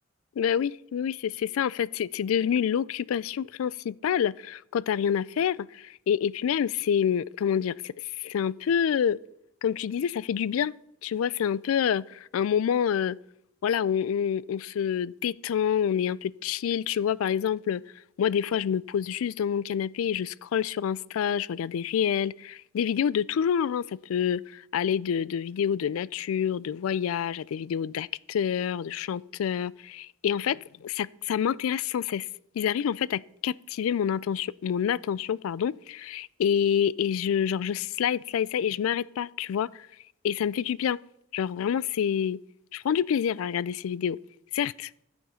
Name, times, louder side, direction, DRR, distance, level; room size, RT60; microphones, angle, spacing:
voice 1, 0.4-9.2 9.6-10.7 11.0-13.2 13.6-17.8 18.2-32.3 32.6-39.9 40.2-41.0 41.3-42.4 42.7-44.2 44.5-44.9, left 8 dB, 80° left, 0.3 m, -27 dB
12.0 x 7.2 x 5.6 m
head